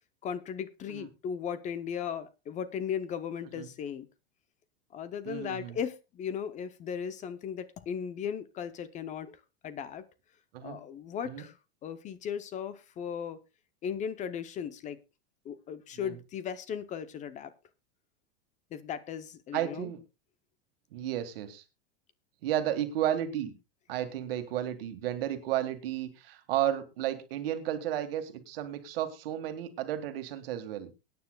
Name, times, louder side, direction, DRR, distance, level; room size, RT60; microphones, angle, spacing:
voice 1, 0.2-4.1 4.9-10.0 10.6-11.6 11.8-13.4 13.8-15.0 15.4-17.5 18.7-19.9, left 8 dB, 25° left, 14 dB, 0.6 m, -37 dB
voice 2, 5.3-5.8 10.5-10.8 11.2-11.4 16.0-16.2 19.5-20.0 20.9-21.6 22.4-23.5 23.9-30.9, right 11 dB, 70° right, 9 dB, 1.8 m, -33 dB
23.0 x 9.4 x 2.2 m, 0.25 s
supercardioid pair, 140°, 30 cm